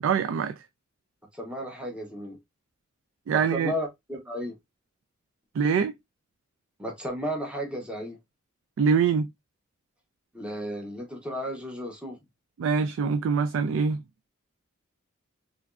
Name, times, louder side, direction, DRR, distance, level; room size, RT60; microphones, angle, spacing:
voice 1, 0.0-0.6 3.3-3.7 5.6-5.9 8.8-9.3 12.6-14.0, right 6 dB, 70° right, 0.3 m, -24 dB
voice 2, 1.3-2.4 3.5-4.5 6.8-8.2 10.3-12.2, equal, 5° right, 0.9 m, -33 dB
3.4 x 3.0 x 2.3 m
head